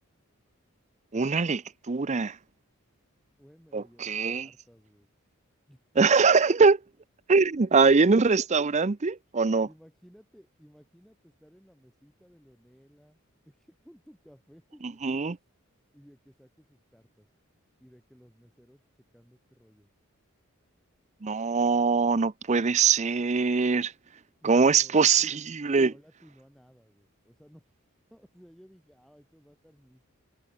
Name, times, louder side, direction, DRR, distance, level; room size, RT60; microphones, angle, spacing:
voice 1, 1.1-2.4 3.7-4.5 6.0-6.8 7.3-9.7 15.0-15.4 21.2-23.9 24.4-25.9, right 4 dB, 30° right, 0.5 m, -22 dB
voice 2, 3.4-5.1 5.7-5.8 7.5-7.6 9.6-15.0 15.9-17.3 17.8-18.8 19.1-19.9 24.4-25.4 25.8-27.7 28.1-30.1, equal, ahead, 6.4 m, -57 dB
head